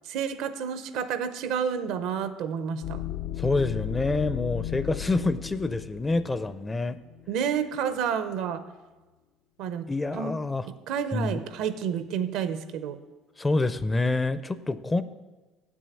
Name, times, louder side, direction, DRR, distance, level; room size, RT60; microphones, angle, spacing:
voice 1, 0.1-3.0 7.3-8.6 9.6-10.4 10.9-13.0, right 7 dB, 75° right, 12 dB, 0.6 m, -30 dB
sound 1, 2.8-7.4, left 13 dB, 80° left, 0.4 m, -35 dB
voice 2, 3.4-7.0 9.9-10.7 11.1-11.4 13.4-15.0, left 2 dB, 15° left, 14 dB, 0.4 m, -27 dB
7.8 x 6.2 x 7.0 m, 1.2 s
supercardioid pair, 100°, 0 cm